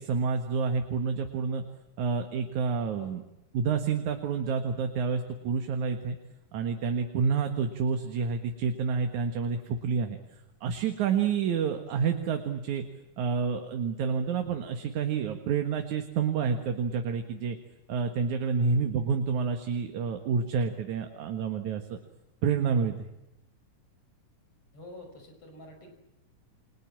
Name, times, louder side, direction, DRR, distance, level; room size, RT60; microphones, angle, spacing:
voice 1, 0.0-1.6 2.0-3.2 3.5-6.2 6.5-10.2 10.6-12.8 13.2-17.6 17.9-22.0 22.4-23.1, right 5 dB, 70° right, 6 dB, 2.9 m, -29 dB
voice 2, 24.7-25.9, left 1 dB, 45° left, 4 dB, 6.7 m, -49 dB
30.0 x 23.5 x 7.5 m, 0.91 s
omnidirectional pair, 3.7 m